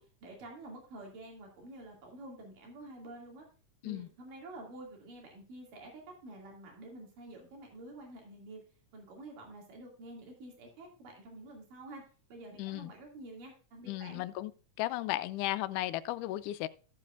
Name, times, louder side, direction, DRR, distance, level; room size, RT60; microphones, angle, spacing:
voice 1, 0.0-3.5 3.8-8.6 8.9-14.2, right 2 dB, 85° right, 4.1 m, -49 dB
voice 2, 12.6-12.9 13.9-14.5 14.8-16.7, left 16 dB, 80° left, 2.0 m, -35 dB
14.5 x 7.6 x 2.5 m
omnidirectional pair, 3.7 m